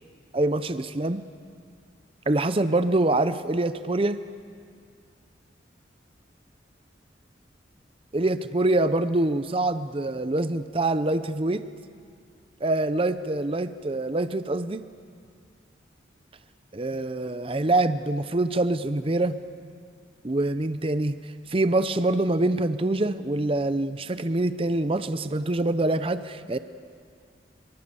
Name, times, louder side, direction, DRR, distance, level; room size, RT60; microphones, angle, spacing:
voice 1, 0.3-1.2 2.3-4.2 8.1-11.7 12.6-14.9 16.7-19.4 20.2-26.6, right 2 dB, 30° right, 12 dB, 0.6 m, -25 dB
25.0 x 24.5 x 7.0 m, 2.2 s
head